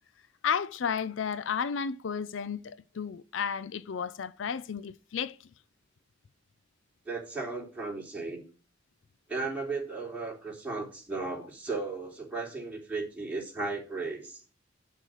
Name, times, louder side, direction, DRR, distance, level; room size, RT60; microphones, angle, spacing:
voice 1, 0.4-5.4 11.2-11.4, left 7 dB, 70° left, 0.4 m, -33 dB
voice 2, 7.0-8.4 9.3-14.4, right 3 dB, 10° right, 3.3 m, -35 dB
9.2 x 6.3 x 6.6 m
head